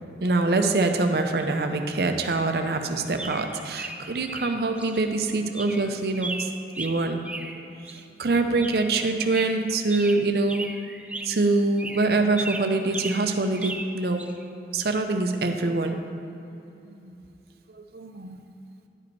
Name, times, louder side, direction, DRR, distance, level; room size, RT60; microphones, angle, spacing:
voice 1, 0.2-6.5 6.8-7.5 7.8-10.6 11.2-14.3 14.7-16.2 16.9-17.2 17.7-18.4, right 3 dB, 60° right, 6 dB, 0.6 m, -25 dB
sound 1, 1.4-1.5 2.4-2.7 3.0-5.0 5.2-5.3 5.5-8.0 8.6-9.0 9.3-11.4 11.8-14.4 14.8-15.0, right 2 dB, 5° right, 0.3 m, -37 dB
10.5 x 5.0 x 4.6 m, 2.9 s
head